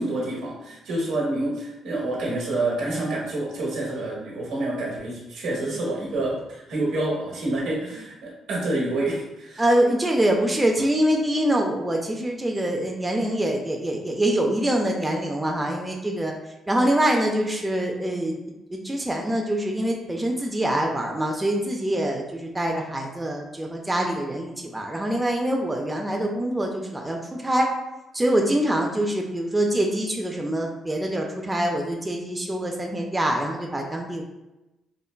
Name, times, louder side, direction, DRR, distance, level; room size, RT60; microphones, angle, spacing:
voice 1, 0.0-9.6, right 2 dB, 85° right, -4 dB, 1.0 m, -28 dB
voice 2, 9.6-16.3 16.7-18.4 18.7-27.7 28.1-34.2, right 1 dB, 15° right, 1 dB, 0.4 m, -24 dB
3.7 x 2.1 x 2.2 m, 0.99 s
cardioid pair, 90°, 0 cm